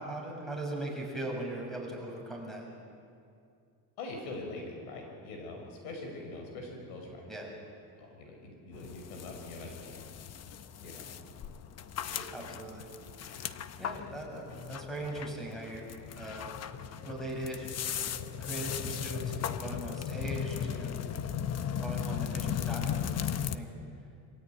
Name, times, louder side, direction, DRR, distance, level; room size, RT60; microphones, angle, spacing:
voice 1, 0.0-2.6 7.3-7.5 12.3-12.9 13.8-16.5 17.0-17.7 18.0-21.0 21.5-23.3 23.5-23.7, right 1 dB, ahead, 0 dB, 6.7 m, -40 dB
voice 2, 4.0-7.3 8.0-10.1 10.8-11.2 12.1-12.5 13.3-13.4 21.6-21.8, left 2 dB, 90° left, 2 dB, 6.3 m, -43 dB
sound 1, 8.7-23.6, left 9 dB, 35° left, 1.0 m, -37 dB
25.5 x 16.5 x 9.1 m, 2.4 s
supercardioid pair, 115°, 42 cm